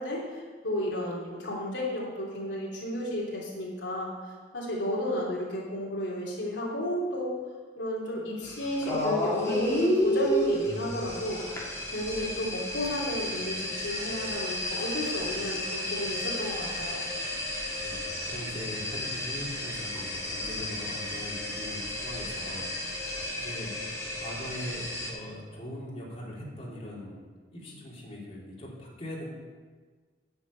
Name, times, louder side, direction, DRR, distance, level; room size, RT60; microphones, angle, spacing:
voice 1, 0.0-4.1 4.5-7.3 7.8-11.4 11.9-17.0, left 1 dB, 85° left, -4 dB, 3.1 m, -32 dB
sound 1, 8.4-25.1, left 1 dB, 15° left, 2.9 m, -32 dB
voice 2, 17.8-23.1 23.3-23.7 24.2-27.2 27.5-29.3, equal, 35° left, -6 dB, 3.4 m, -41 dB
10.0 x 7.1 x 8.7 m, 1.4 s
head